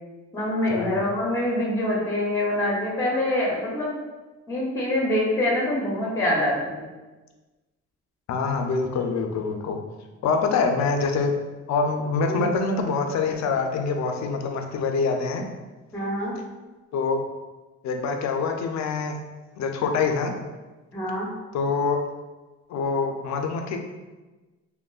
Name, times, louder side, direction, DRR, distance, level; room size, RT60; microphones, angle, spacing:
voice 1, 0.3-3.9 4.5-6.9 12.3-12.5 15.9-16.4 20.9-21.3, left 1 dB, 10° left, -4 dB, 0.6 m, -25 dB
voice 2, 8.3-9.8 10.2-11.3 11.7-15.4 16.9-17.2 17.8-19.2 19.6-20.3 21.5-22.0 22.7-23.8, left 4 dB, 65° left, 4 dB, 0.4 m, -25 dB
2.9 x 2.1 x 2.3 m, 1.2 s
cardioid pair, 90°, 30 cm